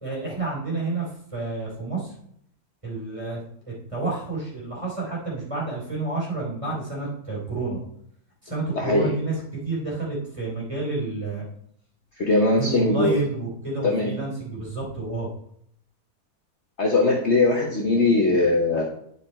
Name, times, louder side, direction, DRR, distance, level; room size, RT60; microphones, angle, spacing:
voice 1, 0.0-2.1 2.8-3.4 3.7-7.8 8.4-9.3 9.6-11.4 12.6-15.3, right 3 dB, 20° right, -4 dB, 3.0 m, -29 dB
voice 2, 8.8-9.1 12.2-13.2 13.8-14.1 16.8-18.8, left 2 dB, 50° left, -1 dB, 1.1 m, -20 dB
9.6 x 4.9 x 4.2 m, 0.68 s
omnidirectional pair, 1.8 m